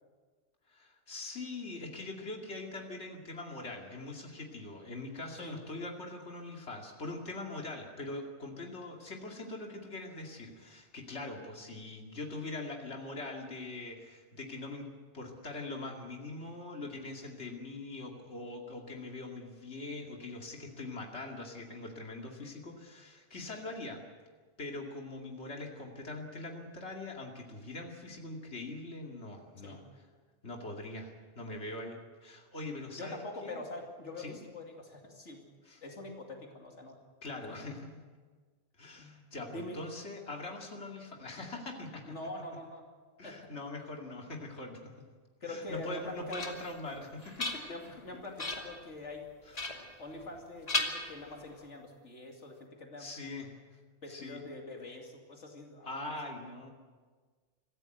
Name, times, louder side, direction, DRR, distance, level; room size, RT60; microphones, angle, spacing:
voice 1, 0.7-24.0 24.6-29.8 30.4-33.6 34.2-34.4 35.7-35.8 37.2-37.8 38.8-42.2 43.2-44.8 45.4-47.6 49.5-49.8 53.0-53.5 54.1-54.4 55.8-56.7, left 2 dB, 70° left, 0 dB, 2.8 m, -42 dB
voice 2, 33.0-35.5 35.8-37.0 37.4-37.6 39.0-39.1 39.4-39.9 42.0-42.9 43.2-43.5 45.4-46.5 47.7-49.2 50.0-53.1 54.0-55.9, left 2 dB, 90° left, 1 dB, 2.8 m, -44 dB
sound 1, 45.8-46.8 47.2-48.0 48.4-48.8 49.5-50.4 50.7-51.6, left 2 dB, 35° left, 2.4 m, -37 dB
26.0 x 15.0 x 7.9 m, 1.5 s
omnidirectional pair, 1.2 m